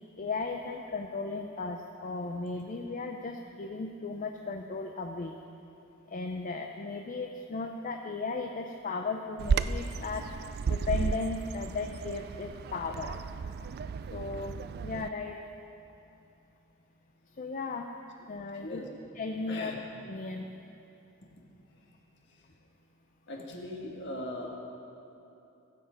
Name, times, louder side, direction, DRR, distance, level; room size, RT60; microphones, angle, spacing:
voice 1, 0.2-5.4 6.1-13.2 14.1-14.6 14.8-15.4 17.3-17.9 18.2-18.8 19.2-19.8 20.0-20.5, left 3 dB, 40° left, 4 dB, 0.5 m, -36 dB
Bird vocalization bird call bird song, 9.4-15.1, right 5 dB, 45° right, 0.3 m, -33 dB
voice 2, 19.5-19.8 22.3-22.5 23.3-24.6, left 1 dB, 55° left, 0 dB, 1.7 m, -39 dB
16.0 x 8.0 x 5.1 m, 2.9 s
head